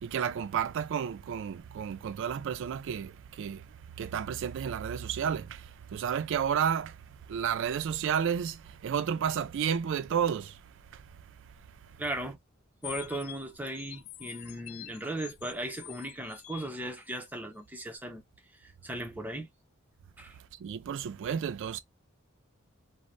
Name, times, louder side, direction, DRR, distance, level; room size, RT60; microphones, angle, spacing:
voice 1, 0.0-7.0 7.3-10.6 10.9-11.0 20.6-21.8, right 8 dB, 60° right, 0.3 m, -31 dB
voice 2, 12.0-12.4 12.8-18.2 18.6-19.5 20.2-20.4, right 1 dB, 10° right, 0.6 m, -37 dB
sound 1, 12.8-17.4, left 14 dB, 75° left, 0.3 m, -46 dB
3.1 x 2.0 x 2.4 m
head